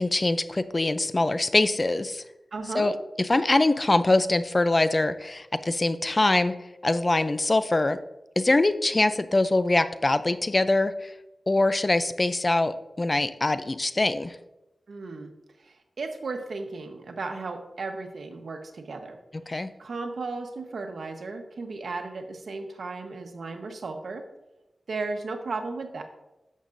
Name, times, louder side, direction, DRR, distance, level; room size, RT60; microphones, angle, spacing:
voice 1, 0.0-2.2 2.7-6.6 6.8-8.0 8.4-11.1 11.5-14.4 19.5-19.7, left 2 dB, 30° left, 12 dB, 0.5 m, -23 dB
voice 2, 2.5-2.9 14.9-15.3 16.0-19.2 19.8-24.2 24.9-26.0, right 3 dB, 80° right, 5 dB, 1.1 m, -35 dB
11.0 x 7.4 x 2.6 m, 0.96 s
wide cardioid pair, 90°, 0 cm